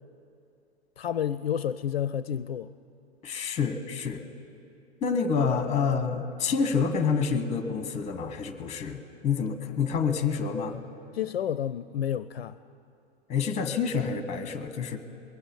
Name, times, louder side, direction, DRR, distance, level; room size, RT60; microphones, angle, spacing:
voice 1, 1.0-2.7 11.1-12.6, left 9 dB, 70° left, 15 dB, 0.5 m, -30 dB
voice 2, 3.2-4.2 5.0-10.8 13.3-15.0, left 6 dB, 20° left, 9 dB, 1.1 m, -28 dB
21.5 x 7.9 x 8.2 m, 2.7 s
figure-of-eight pair, 105°, 32 cm